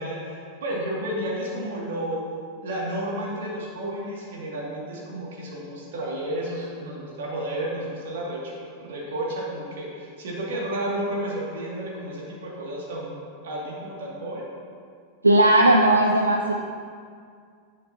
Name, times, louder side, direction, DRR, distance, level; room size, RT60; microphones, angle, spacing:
voice 1, 0.0-2.2 2.6-8.5 8.8-14.5, right 1 dB, 60° right, -4 dB, 2.5 m, -32 dB
voice 2, 15.2-16.5, right 1 dB, 85° right, 2 dB, 0.5 m, -17 dB
10.5 x 9.3 x 3.0 m, 2.2 s
figure-of-eight pair, 90°, 0 cm